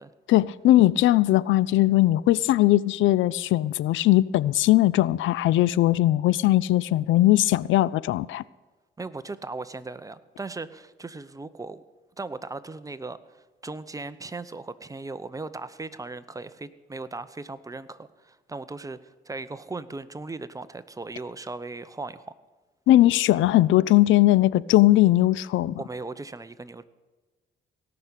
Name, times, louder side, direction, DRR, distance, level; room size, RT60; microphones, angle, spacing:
voice 1, 0.3-8.4 22.9-25.8, left 15 dB, 75° left, 0.4 m, -20 dB
voice 2, 9.0-11.8 12.2-22.3 25.8-26.8, right 3 dB, 15° right, 0.7 m, -38 dB
17.5 x 6.0 x 8.2 m
cardioid pair, 90°, 20 cm